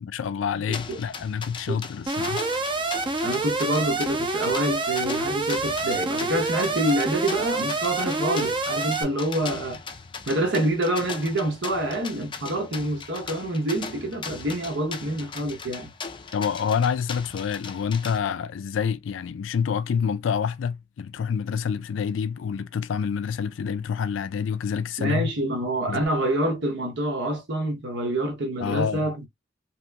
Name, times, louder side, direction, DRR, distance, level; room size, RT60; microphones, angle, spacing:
voice 1, 0.0-2.5 16.3-25.3 25.9-26.0 28.6-29.1, left 7 dB, 90° left, 0.4 m, -27 dB
sound 1, 0.7-18.2, left 5 dB, 25° left, 0.4 m, -39 dB
Alarm, 2.1-9.0, right 3 dB, 25° right, 0.5 m, -27 dB
voice 2, 3.2-9.8 10.3-15.9 25.0-29.3, right 1 dB, 65° right, 0.9 m, -27 dB
2.9 x 2.9 x 2.2 m
head